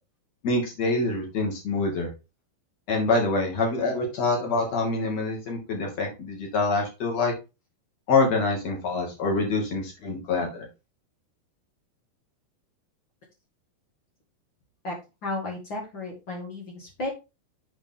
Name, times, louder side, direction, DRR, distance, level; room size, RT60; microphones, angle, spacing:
voice 1, 0.4-2.1 2.9-7.3 8.1-10.7, left 3 dB, 40° left, 0 dB, 2.8 m, -25 dB
voice 2, 15.2-17.1, left 2 dB, 70° left, -1 dB, 1.1 m, -33 dB
8.3 x 5.7 x 3.7 m, 0.27 s
omnidirectional pair, 5.7 m